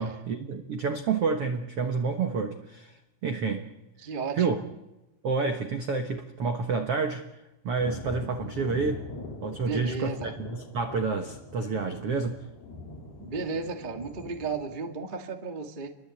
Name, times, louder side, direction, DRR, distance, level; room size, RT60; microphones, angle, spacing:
voice 1, 0.0-3.0 3.2-3.7 4.4-4.6 5.2-7.2 7.6-9.1 9.4-12.4, right 4 dB, 65° right, 5 dB, 1.4 m, -29 dB
voice 2, 4.0-4.7 9.6-10.3 13.2-15.9, right 4 dB, 30° right, 4 dB, 0.8 m, -34 dB
Thunder, 7.8-14.8, left 2 dB, 65° left, 6.7 m, -42 dB
30.0 x 22.5 x 8.5 m, 0.98 s
omnidirectional pair, 4.8 m